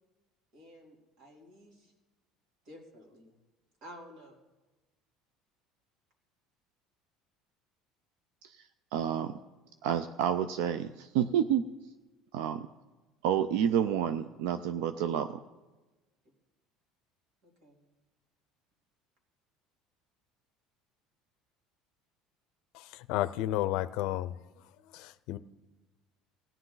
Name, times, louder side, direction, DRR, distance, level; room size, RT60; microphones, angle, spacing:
voice 1, 0.5-1.9 2.6-3.3 3.8-4.4 17.4-17.8, equal, 55° right, 0 dB, 3.2 m, -52 dB
voice 2, 8.4-9.4 9.8-11.6 12.3-12.7 13.2-15.4, right 9 dB, 80° right, 11 dB, 0.5 m, -29 dB
voice 3, 22.7-24.4 24.9-25.4, left 14 dB, 70° left, 14 dB, 0.5 m, -32 dB
17.0 x 10.5 x 3.9 m, 1.2 s
cardioid pair, 140°, 0 cm